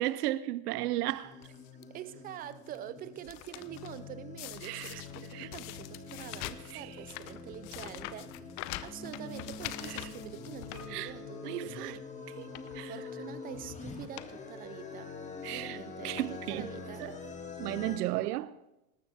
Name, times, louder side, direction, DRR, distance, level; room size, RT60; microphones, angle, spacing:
voice 1, 0.0-1.4 4.6-5.0 5.3-5.5 6.7-6.9 9.9-10.0 10.9-11.1 11.5-12.0 12.4-12.5 12.7-12.9 15.4-15.8 16.0-16.7 17.0-17.2 17.6-18.5, right 16 dB, 70° right, 0.6 m, -34 dB
sound 1, 1.2-18.0, left 4 dB, 15° left, 1.8 m, -45 dB
sound 2, 1.4-1.8 2.4-2.8 3.0-4.0 4.4-11.5 11.9-12.0 12.4-12.8 13.6-13.7 14.0-14.3 14.6-14.7 15.6-15.8 16.2-16.7 17.4-17.5 17.7-17.8, left 15 dB, 50° left, 0.8 m, -44 dB
voice 2, 1.9-8.5 8.8-12.1 12.8-15.2 15.5-17.1, right 11 dB, 20° right, 0.4 m, -45 dB
Piano, 10.7-12.8 13.0-13.1, left 1 dB, 40° right, 3.9 m, -59 dB
19.5 x 13.5 x 3.5 m
hypercardioid pair, 115°, 48 cm